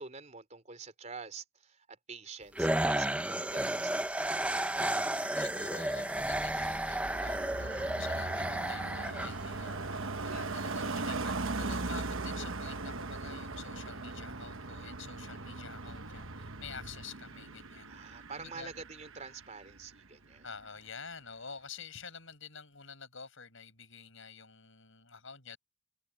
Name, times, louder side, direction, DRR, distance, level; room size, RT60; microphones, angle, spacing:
voice 1, 0.0-4.2 10.3-10.6 17.9-20.5, right 4 dB, 30° right, 3.7 m, -47 dB
sound 1, 2.6-9.8, right 1 dB, 5° right, 0.7 m, -33 dB
voice 2, 4.8-18.7 20.4-25.6, left 5 dB, 60° left, 7.2 m, -48 dB
Car passing by, 5.3-20.1 20.3-20.6, right 3 dB, 65° right, 1.1 m, -40 dB
sound 2, 6.1-17.1, equal, 85° right, 2.6 m, -47 dB
head